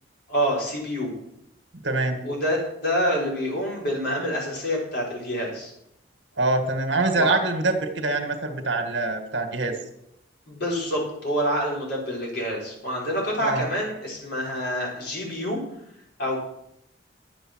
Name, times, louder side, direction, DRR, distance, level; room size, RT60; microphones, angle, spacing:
voice 1, 0.3-1.1 2.2-5.7 7.1-7.4 10.5-15.6 16.2-16.4, equal, 55° left, -3 dB, 5.6 m, -27 dB
voice 2, 1.8-2.2 6.4-9.7 13.4-13.6, right 2 dB, 70° right, 5 dB, 1.9 m, -24 dB
12.0 x 8.3 x 6.4 m, 0.78 s
head